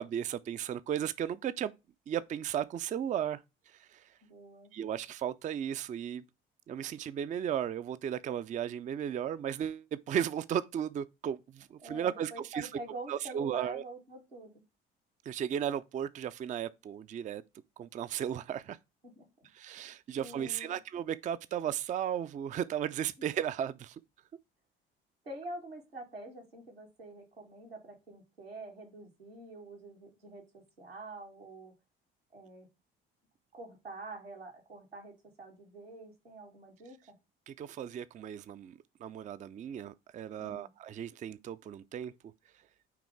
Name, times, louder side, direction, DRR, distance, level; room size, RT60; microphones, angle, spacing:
voice 1, 0.0-1.7 2.1-3.4 3.8-4.0 4.7-6.2 6.7-12.7 13.1-13.8 15.3-17.4 17.8-18.8 19.5-24.0 37.5-42.1, right 9 dB, 25° right, 0.4 m, -35 dB
voice 2, 4.3-4.7 11.8-14.5 19.0-19.3 20.1-20.8 25.2-31.7 32.3-32.7 33.5-37.0 40.4-40.7, right 2 dB, 85° right, 1.8 m, -46 dB
9.3 x 3.7 x 3.5 m
figure-of-eight pair, 50°, 29 cm